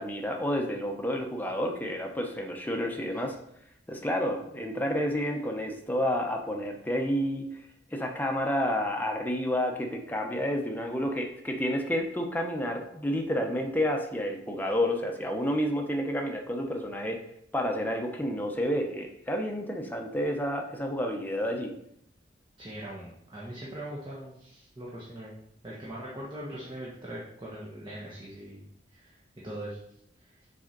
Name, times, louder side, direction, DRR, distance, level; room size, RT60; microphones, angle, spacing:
voice 1, 0.0-3.3 3.9-7.6 7.9-17.2 17.5-21.8, equal, 10° left, 2 dB, 0.9 m, -30 dB
voice 2, 22.6-25.3 25.6-28.6 28.9-29.8 30.2-30.3, right 1 dB, 25° right, -5 dB, 1.3 m, -41 dB
6.2 x 4.3 x 5.2 m, 0.74 s
head